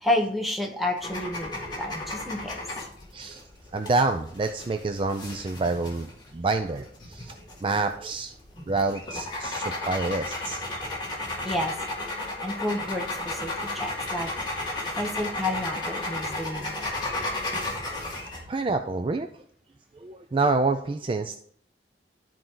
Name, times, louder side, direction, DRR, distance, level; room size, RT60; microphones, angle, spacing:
voice 1, 0.0-2.6 11.4-11.7 12.4-14.3 14.9-16.9, left 1 dB, ahead, 1 dB, 1.2 m, -30 dB
sound 1, 1.0-18.4, left 2 dB, 25° left, 2.1 m, -34 dB
voice 2, 3.7-7.3 7.6-8.3 8.7-10.7 18.5-19.3 20.0-21.4, right 3 dB, 30° right, 7 dB, 0.4 m, -27 dB
12.5 x 4.5 x 3.8 m, 0.62 s
head